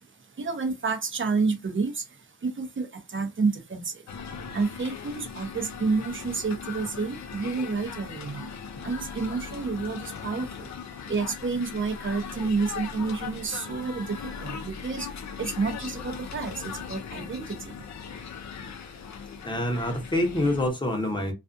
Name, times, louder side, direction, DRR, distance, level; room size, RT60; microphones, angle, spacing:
voice 1, 0.4-2.0 2.4-3.9 4.5-8.4 8.8-10.5 11.1-15.1 15.4-17.4, right 4 dB, 30° right, 0.7 m, -29 dB
sound 1, 4.1-20.7, left 6 dB, 50° left, 0.5 m, -39 dB
voice 2, 19.4-21.3, left 1 dB, 10° left, 0.8 m, -26 dB
2.4 x 2.4 x 2.5 m
cardioid pair, 95°, 38 cm